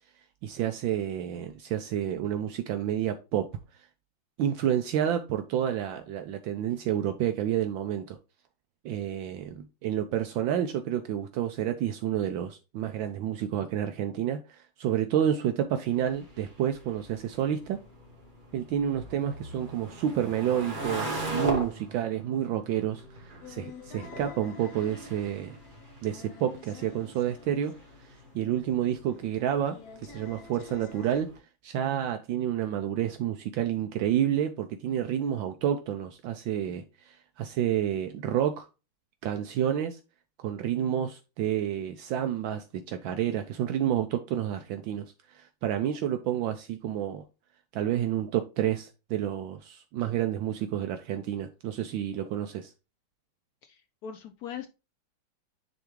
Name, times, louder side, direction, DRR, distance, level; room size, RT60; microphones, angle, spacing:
voice 1, 0.4-3.5 4.4-8.2 8.8-17.8 18.5-25.6 26.0-27.7 28.3-29.8 30.0-31.3 31.6-38.7 39.2-40.0 40.4-45.0 45.3-47.2 47.7-52.7, right 10 dB, 75° right, 1.3 m, -29 dB
sound 1, 15.8-31.4, right 2 dB, 25° right, 1.5 m, -40 dB
sound 2, 23.4-31.2, left 5 dB, 60° left, 1.0 m, -49 dB
voice 2, 53.6-54.7, left 8 dB, 85° left, 0.8 m, -40 dB
10.0 x 3.5 x 3.1 m
omnidirectional pair, 2.3 m